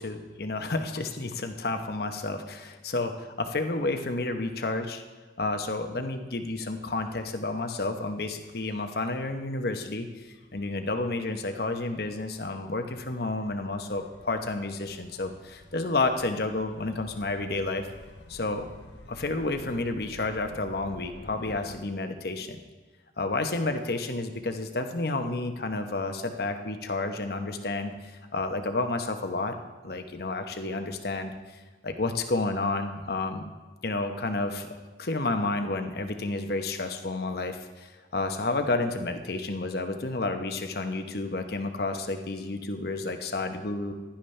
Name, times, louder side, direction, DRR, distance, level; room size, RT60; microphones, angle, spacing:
voice 1, 0.0-5.0 5.4-10.1 10.5-17.9 18.3-18.7 19.1-22.6 23.2-27.9 28.3-29.6 29.8-31.3 31.8-33.4 33.8-37.9 38.1-43.9, left 2 dB, 60° left, 6 dB, 1.0 m, -30 dB
Gull seagull / Waves surf / Siren, 7.0-21.7, left 1 dB, 75° left, 1.2 m, -51 dB
16.0 x 11.5 x 3.3 m, 1.3 s
head